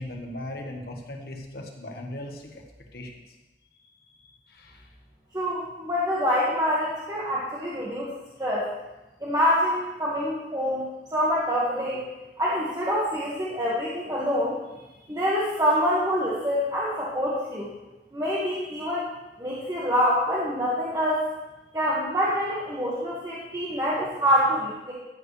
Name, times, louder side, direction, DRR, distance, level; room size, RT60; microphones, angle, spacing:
voice 1, 0.0-2.6 2.9-3.1 4.2-4.9, left 1 dB, 60° left, 1 dB, 1.6 m, -38 dB
voice 2, 5.3-8.1 8.4-8.7 9.2-12.0 12.4-14.6 15.1-17.7 18.1-19.1 19.4-21.3 21.7-24.9, equal, 20° right, -7 dB, 1.8 m, -26 dB
14.5 x 9.2 x 3.3 m, 1.0 s
head